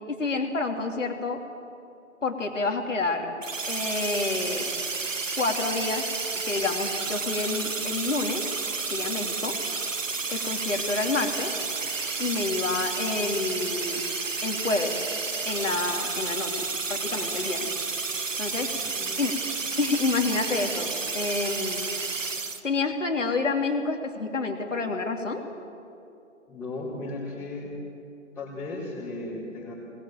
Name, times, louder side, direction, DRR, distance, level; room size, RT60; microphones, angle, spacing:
voice 1, 0.1-1.4 2.2-3.3 3.7-4.7 5.4-6.0 6.5-8.4 8.9-9.5 10.3-11.5 12.2-14.0 14.4-15.0 15.4-17.7 18.4-18.7 19.2-19.3 19.8-21.9 22.6-25.4, left 3 dB, 70° left, 3 dB, 3.2 m, -28 dB
sound 1, 3.4-22.6, right 4 dB, 75° right, 1.8 m, -31 dB
voice 2, 18.7-19.1 26.5-27.8 28.3-29.7, left 2 dB, 5° left, -12 dB, 4.5 m, -36 dB
21.5 x 21.0 x 7.8 m, 2.7 s
figure-of-eight pair, 135°, 38 cm